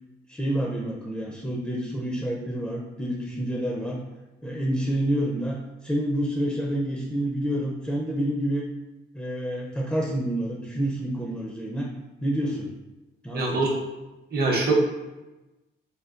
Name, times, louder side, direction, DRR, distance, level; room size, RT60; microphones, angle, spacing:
voice 1, 0.3-4.0 4.4-8.6 9.1-11.9 12.2-12.7 13.2-13.6, right 1 dB, 5° left, -1 dB, 0.4 m, -28 dB
voice 2, 13.3-13.7 14.3-14.7, right 3 dB, 50° right, 0 dB, 0.7 m, -23 dB
3.5 x 2.2 x 2.4 m, 1.1 s
cardioid pair, 90°, 20 cm